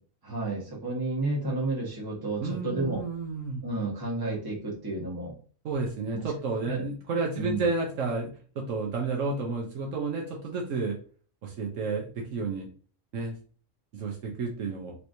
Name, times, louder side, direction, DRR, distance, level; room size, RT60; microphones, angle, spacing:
voice 1, 0.2-3.0 3.6-5.4 6.1-6.3 6.7-6.8 7.4-7.7, right 2 dB, 15° right, -4 dB, 1.1 m, -31 dB
voice 2, 2.4-3.6 5.6-8.3 8.6-11.0 11.4-12.7 13.1-13.3 13.9-15.0, right 4 dB, 70° right, 0 dB, 1.0 m, -31 dB
3.2 x 3.0 x 2.6 m, 0.41 s
omnidirectional pair, 1.4 m